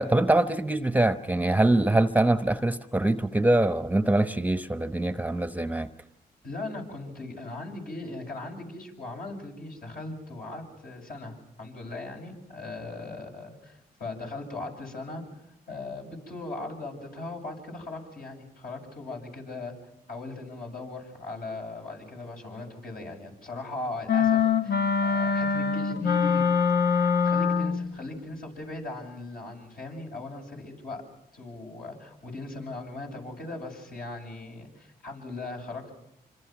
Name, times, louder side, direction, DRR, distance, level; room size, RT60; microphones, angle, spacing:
voice 1, 0.0-5.9, right 2 dB, 10° right, 11 dB, 1.0 m, -24 dB
voice 2, 6.4-15.2 15.7-19.7 20.1-26.6 26.9-31.0 31.3-35.9, left 2 dB, 60° left, 1 dB, 7.7 m, -39 dB
sound 1, 24.1-27.9, left 6 dB, 80° left, 1.3 m, -24 dB
26.5 x 26.0 x 6.1 m, 0.79 s
cardioid pair, 65°, 17 cm